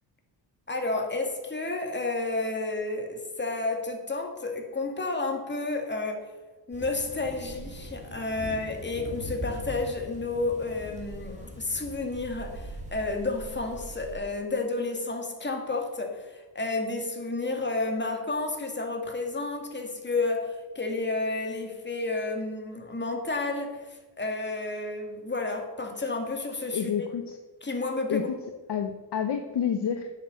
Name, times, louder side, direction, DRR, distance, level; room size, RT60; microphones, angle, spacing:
voice 1, 0.7-6.3 6.7-27.1 27.6-28.3, left 3 dB, 20° left, 3 dB, 2.2 m, -31 dB
sound 1, 6.7-14.1, right 1 dB, 15° right, 2.7 m, -41 dB
voice 2, 26.7-27.4 28.1-28.4 28.7-30.1, left 8 dB, 55° left, 7 dB, 1.0 m, -29 dB
9.6 x 6.9 x 6.6 m, 1.2 s
cardioid pair, 80°, 49 cm